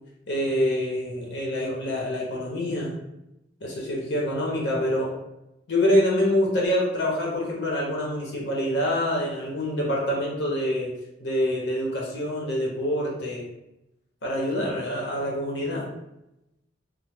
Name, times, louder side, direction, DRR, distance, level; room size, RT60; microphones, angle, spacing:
voice 1, 0.3-2.9 3.6-5.1 5.7-10.9 11.2-13.4 14.2-15.9, left 1 dB, 65° left, -3 dB, 0.7 m, -26 dB
2.9 x 2.0 x 3.4 m, 0.90 s
head